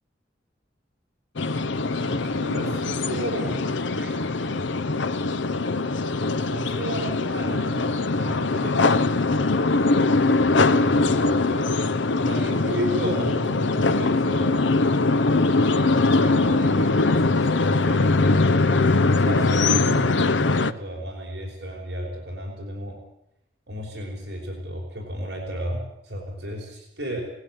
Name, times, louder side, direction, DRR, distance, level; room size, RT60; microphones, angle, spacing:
sound 1, 1.4-20.7, left 3 dB, 85° left, 0.8 m, -22 dB
voice 1, 2.0-3.6 4.0-4.3 6.4-9.0 10.6-11.7 12.2-14.6 15.6-23.0 23.7-27.2, right 1 dB, 60° right, 0 dB, 5.7 m, -34 dB
18.5 x 16.0 x 9.3 m, 0.77 s
head